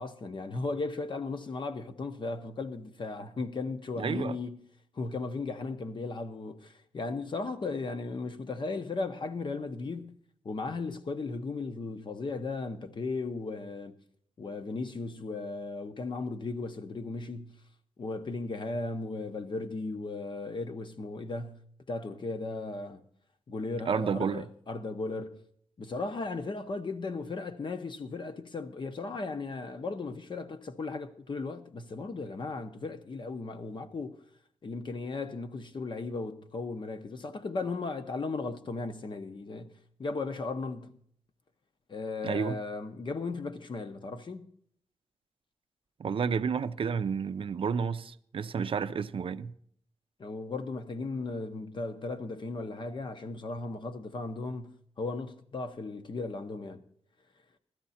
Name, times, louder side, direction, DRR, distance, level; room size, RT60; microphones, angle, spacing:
voice 1, 0.0-4.6 4.9-10.2 10.4-14.0 14.4-17.6 18.0-23.0 23.5-25.4 25.8-34.2 34.6-41.0 41.9-44.5 50.2-56.8, left 3 dB, 45° left, 1.0 m, -36 dB
voice 2, 4.0-4.4 23.9-24.4 42.2-42.6 46.0-49.5, right 6 dB, 55° right, 0.5 m, -31 dB
16.0 x 13.0 x 4.2 m
wide cardioid pair, 145°, 11 cm